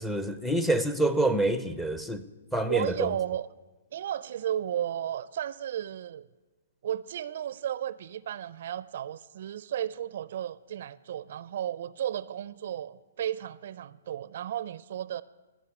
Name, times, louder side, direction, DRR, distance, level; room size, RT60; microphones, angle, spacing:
voice 1, 0.0-2.2 2.5-3.1, right 1 dB, 5° left, 0.6 m, -27 dB
voice 2, 2.7-3.5 3.9-6.3 6.8-15.2, right 10 dB, 60° right, 0.4 m, -34 dB
16.0 x 6.4 x 9.5 m
hypercardioid pair, 150°, 0 cm